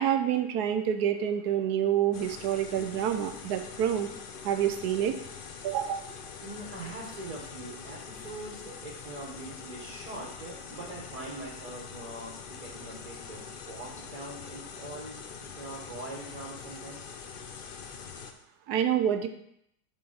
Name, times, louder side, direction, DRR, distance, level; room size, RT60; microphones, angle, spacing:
voice 1, 0.0-4.1 4.4-5.1 5.6-6.1 18.7-19.3, right 9 dB, 90° right, 8 dB, 1.2 m, -27 dB
sound 1, 2.1-18.3, left 6 dB, 75° left, 0.4 m, -44 dB
voice 2, 6.4-12.3 12.6-17.1, right 2 dB, 30° right, -1 dB, 0.8 m, -43 dB
6.8 x 3.6 x 5.5 m, 0.73 s
omnidirectional pair, 1.7 m